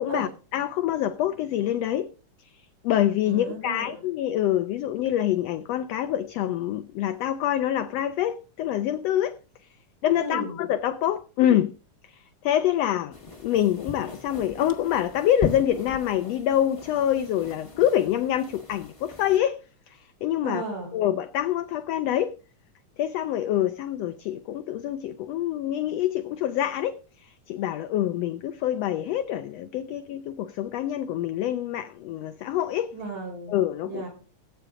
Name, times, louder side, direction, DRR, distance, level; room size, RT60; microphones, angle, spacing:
voice 1, 0.0-2.1 2.8-9.3 10.0-11.7 12.4-13.2 13.4-19.6 20.2-20.6 20.9-22.3 23.0-27.0 27.5-32.9 33.5-34.0, left 11 dB, 75° left, 1.5 m, -26 dB
voice 2, 3.3-4.0 10.2-10.6 20.4-21.0 32.9-33.5 33.8-34.1, right 3 dB, 80° right, 6.9 m, -35 dB
sound 1, 13.1-19.4, left 4 dB, 30° left, 0.5 m, -38 dB
18.0 x 8.8 x 3.7 m
omnidirectional pair, 3.6 m